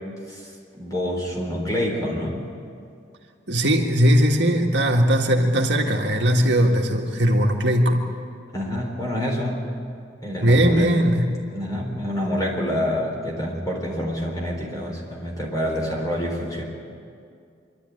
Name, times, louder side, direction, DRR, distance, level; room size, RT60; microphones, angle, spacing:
voice 1, 0.7-2.5 8.5-9.7 10.2-10.9 11.5-16.6, equal, 20° left, -1 dB, 4.0 m, -27 dB
voice 2, 3.5-8.0 10.4-11.3, equal, 70° right, 1 dB, 1.8 m, -19 dB
26.0 x 12.0 x 9.7 m, 2.4 s
head